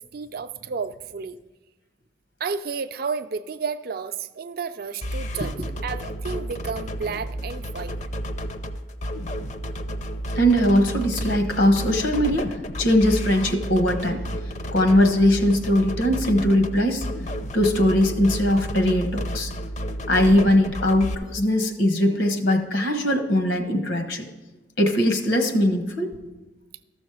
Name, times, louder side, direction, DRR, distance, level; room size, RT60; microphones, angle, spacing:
voice 1, 0.0-1.4 2.4-5.5 5.8-8.0, right 5 dB, 55° right, 11 dB, 0.5 m, -31 dB
sound 1, 5.0-21.1, equal, 40° left, 0.5 m, -31 dB
voice 2, 10.3-14.2 14.7-17.0 17.5-19.5 20.1-24.2 24.8-26.2, left 1 dB, 85° left, 5 dB, 1.2 m, -20 dB
13.5 x 6.4 x 4.8 m, 1.2 s
head